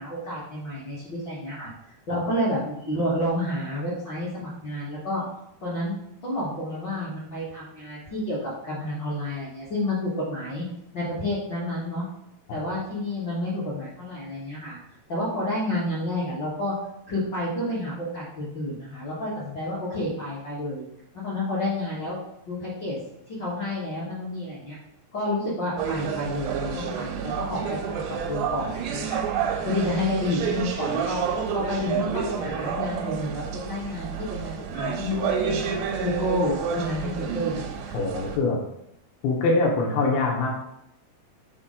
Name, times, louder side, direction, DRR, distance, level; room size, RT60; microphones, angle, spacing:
voice 1, 0.0-1.7 2.1-5.2 5.6-10.6 10.9-12.0 12.5-14.8 15.1-16.7 17.1-20.8 21.1-22.2 22.4-23.0 23.3-24.8 25.1-29.2 29.6-31.2 31.5-35.6 36.0-37.9, left 1 dB, 55° left, -8 dB, 1.2 m, -30 dB
sound 1, 25.8-38.4, right 7 dB, 85° right, 2.5 m, -29 dB
voice 2, 37.9-38.6 39.2-40.5, left 3 dB, 90° left, -1 dB, 2.9 m, -23 dB
6.0 x 4.4 x 3.7 m, 0.79 s
omnidirectional pair, 4.1 m